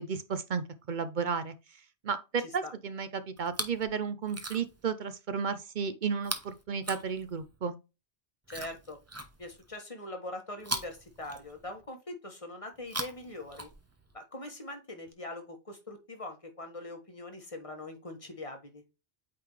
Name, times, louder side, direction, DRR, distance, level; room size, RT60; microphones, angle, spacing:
voice 1, 0.0-1.5 2.0-7.8, right 6 dB, 50° right, 0.7 m, -33 dB
voice 2, 2.4-2.7 8.5-9.0 9.4-13.7 14.1-18.8, left 2 dB, 30° left, 1.4 m, -42 dB
Chewing mastication, 3.4-3.9 4.2-4.9 6.2-7.6 8.5-9.7 10.6-11.9 12.7-14.1 15.1-15.2, right 2 dB, 15° right, 0.8 m, -40 dB
8.7 x 3.8 x 3.1 m
omnidirectional pair, 1.2 m